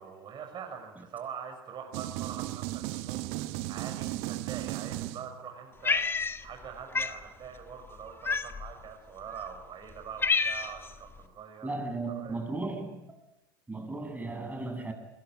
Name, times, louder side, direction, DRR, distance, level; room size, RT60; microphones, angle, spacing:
voice 1, 0.0-11.7 12.1-12.4, right 7 dB, 40° right, 3 dB, 5.9 m, -44 dB
sound 1, 1.9-5.6, right 16 dB, 60° right, 1.2 m, -36 dB
Cat, 5.8-6.7 6.9-7.2 8.2-8.8 9.5-9.6 9.9-10.9, left 4 dB, 20° left, 2.0 m, -28 dB
voice 2, 11.6-13.0 13.7-14.9, right 2 dB, 15° right, 5 dB, 7.7 m, -35 dB
27.0 x 21.5 x 9.3 m, 0.95 s
hypercardioid pair, 80°, 12 cm